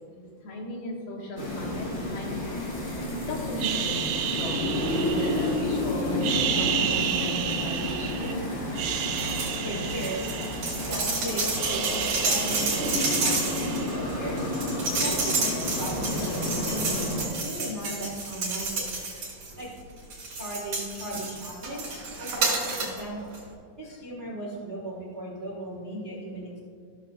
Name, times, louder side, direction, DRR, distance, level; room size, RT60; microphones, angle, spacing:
voice 1, 0.1-2.3 2.8-4.0 4.4-8.4, left 1 dB, 75° left, -5 dB, 3.3 m, -36 dB
sound 1, 1.4-17.3, left 1 dB, 35° left, 1.3 m, -31 dB
sound 2, 3.6-5.7 6.1-8.3 8.7-11.1 11.3-14.2, right 9 dB, 80° right, 2.0 m, -31 dB
sound 3, 9.1-9.6 9.9-19.6 20.1-23.0 23.3-23.4, right 3 dB, 60° right, 3.3 m, -30 dB
voice 2, 9.6-10.2 10.7-14.5 15.0-16.9 17.4-19.1 19.6-19.7 20.3-21.9 22.2-23.3 23.8-26.6, right 1 dB, 45° right, -6 dB, 0.9 m, -37 dB
15.0 x 6.6 x 2.4 m, 2.2 s
omnidirectional pair, 3.9 m